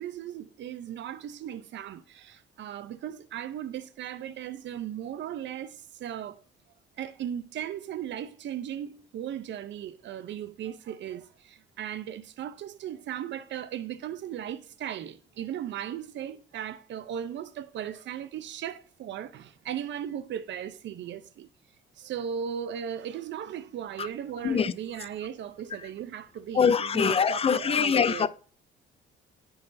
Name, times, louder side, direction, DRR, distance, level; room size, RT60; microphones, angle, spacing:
voice 1, 0.0-6.3 7.0-11.2 11.8-21.5 22.0-28.3, right 9 dB, 65° right, 0.6 m, -37 dB
voice 2, 26.5-28.3, left 6 dB, 30° left, 0.3 m, -23 dB
9.8 x 3.9 x 2.6 m
cardioid pair, 90°, 20 cm